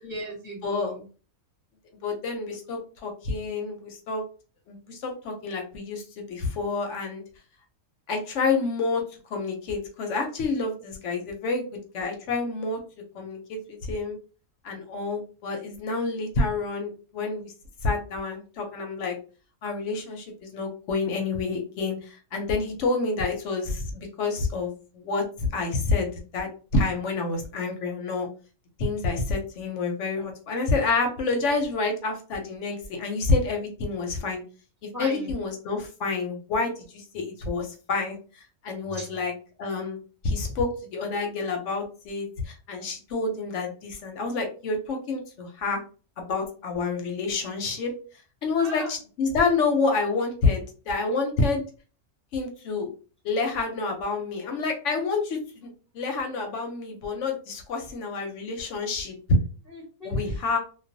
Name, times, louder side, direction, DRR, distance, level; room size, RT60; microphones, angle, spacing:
voice 1, 0.0-1.0 34.9-35.3 38.9-39.1 48.6-49.0 59.7-60.4, equal, 15° left, -3 dB, 0.7 m, -38 dB
voice 2, 2.0-4.2 4.7-7.2 8.1-9.0 9.3-12.8 13.1-14.2 14.6-17.5 17.8-19.2 19.6-28.3 28.8-34.4 34.8-38.2 38.6-39.3 39.6-40.0 40.2-45.8 46.2-47.9 48.4-51.6 52.3-52.9 53.2-55.7 55.9-59.1 60.0-60.6, left 3 dB, 70° left, 3 dB, 0.8 m, -28 dB
2.3 x 2.2 x 2.5 m, 0.37 s
omnidirectional pair, 1.5 m